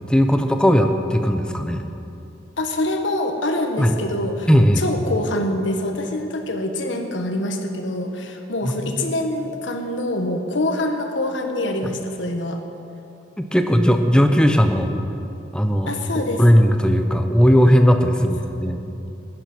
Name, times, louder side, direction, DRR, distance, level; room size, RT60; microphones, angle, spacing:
voice 1, 0.1-1.8 3.8-3.9 4.5-4.8 8.6-9.0 13.4-14.9 15.5-18.8, equal, 5° left, 6 dB, 0.8 m, -17 dB
voice 2, 2.6-4.5 4.8-12.6 15.8-16.4, left 1 dB, 75° left, 5 dB, 1.4 m, -25 dB
15.0 x 10.5 x 6.1 m, 2.8 s
head